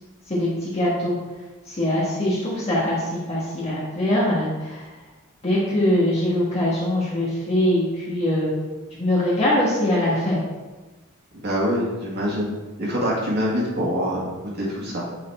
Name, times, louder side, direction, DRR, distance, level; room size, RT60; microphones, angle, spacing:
voice 1, 0.3-1.2 1.7-3.0 3.3-4.9 5.4-8.5 9.0-10.4, left 1 dB, 30° left, -7 dB, 1.4 m, -22 dB
voice 2, 11.3-12.5 12.8-14.2 14.6-15.0, equal, 50° right, -4 dB, 2.1 m, -24 dB
8.4 x 4.2 x 4.3 m, 1.2 s
head